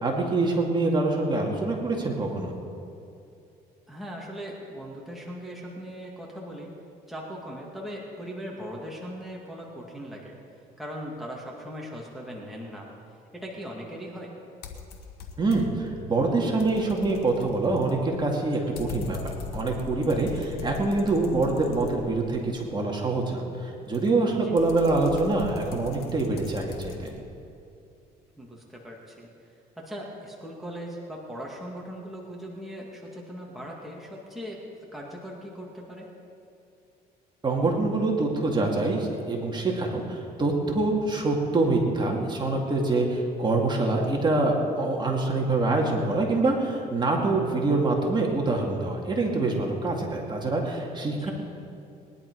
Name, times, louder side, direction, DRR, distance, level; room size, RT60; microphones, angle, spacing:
voice 1, 0.0-2.5 15.4-27.1 37.4-51.3, right 2 dB, 25° right, -1 dB, 2.4 m, -25 dB
voice 2, 3.9-6.7 7.1-10.3 10.8-12.9 13.3-14.4 24.3-24.5 28.4-29.3 29.8-34.6 34.9-36.1 51.0-51.3, equal, ahead, -3 dB, 2.2 m, -39 dB
sound 1, 14.6-15.9 16.3-22.4 23.9-27.2, left 6 dB, 70° left, 1.5 m, -40 dB
20.5 x 11.0 x 4.8 m, 2.6 s
cardioid pair, 110°, 17 cm